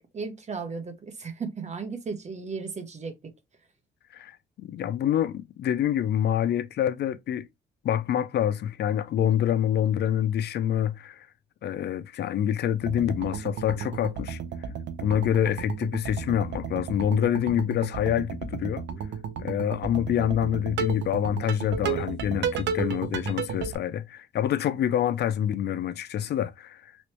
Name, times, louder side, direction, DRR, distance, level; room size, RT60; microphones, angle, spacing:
voice 1, 0.1-3.1, right 4 dB, 40° right, 0.9 m, -35 dB
voice 2, 4.1-7.5 7.8-11.3 11.6-14.4 15.0-18.9 19.4-26.9, left 10 dB, 65° left, 0.4 m, -26 dB
sound 1, 12.8-23.8, right 6 dB, 90° right, 0.6 m, -33 dB
3.1 x 2.9 x 3.0 m
cardioid pair, 100°, 18 cm